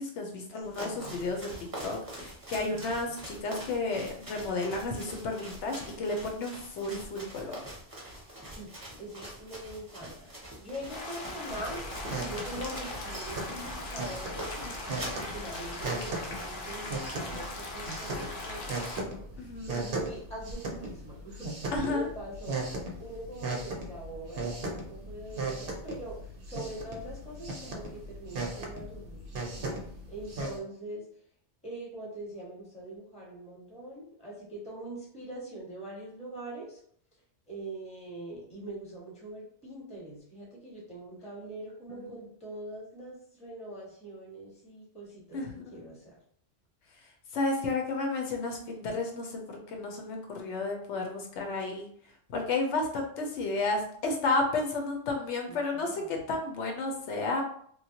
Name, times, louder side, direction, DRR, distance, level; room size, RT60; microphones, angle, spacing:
voice 1, 0.0-1.5 1.8-7.6 19.4-19.7 21.7-22.1 41.9-42.1 45.3-45.8 47.3-51.9 52.3-57.4, left 3 dB, 80° left, 2 dB, 0.9 m, -32 dB
sound 1, 0.6-16.6, right 1 dB, 20° right, 0.7 m, -44 dB
voice 2, 0.8-1.3 2.7-3.2 8.2-22.7 23.0-29.2 30.1-31.0 31.6-36.8 37.5-45.4 45.7-46.1 55.5-56.2, right 1 dB, 5° left, -5 dB, 1.0 m, -43 dB
sound 2, 10.9-19.0, left 2 dB, 55° left, 0.6 m, -40 dB
sound 3, 11.5-30.6, right 2 dB, 60° right, 0.8 m, -38 dB
3.0 x 2.1 x 2.8 m, 0.62 s
omnidirectional pair, 1.2 m